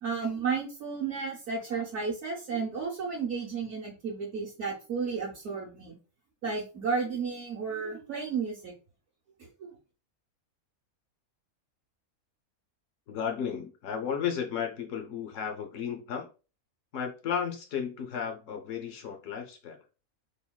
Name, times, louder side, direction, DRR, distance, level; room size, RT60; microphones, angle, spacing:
voice 1, 0.0-6.0 6.4-8.7 9.4-9.7, right 5 dB, 60° right, 0.9 m, -33 dB
voice 2, 13.1-16.3 16.9-19.8, left 7 dB, 70° left, 0.9 m, -34 dB
3.5 x 2.2 x 2.2 m
omnidirectional pair, 1.5 m